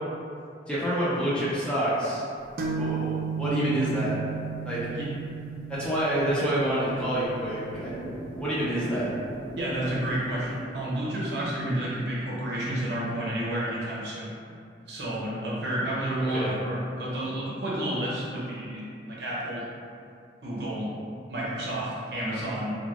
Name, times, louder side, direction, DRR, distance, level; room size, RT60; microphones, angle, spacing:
voice 1, 0.7-2.2 2.7-4.2 4.6-4.9 5.7-8.0 8.4-9.1 16.3-16.6, right 1 dB, 5° left, -10 dB, 0.5 m, -27 dB
sound 1, 2.6-10.1, right 6 dB, 55° right, 0.3 m, -35 dB
sound 2, 7.7-13.2, right 1 dB, 75° left, 0.6 m, -42 dB
voice 2, 9.6-14.3 14.9-19.6 20.4-20.9 21.3-22.8, right 1 dB, 70° right, -7 dB, 0.7 m, -30 dB
3.1 x 2.3 x 2.4 m, 2.4 s
head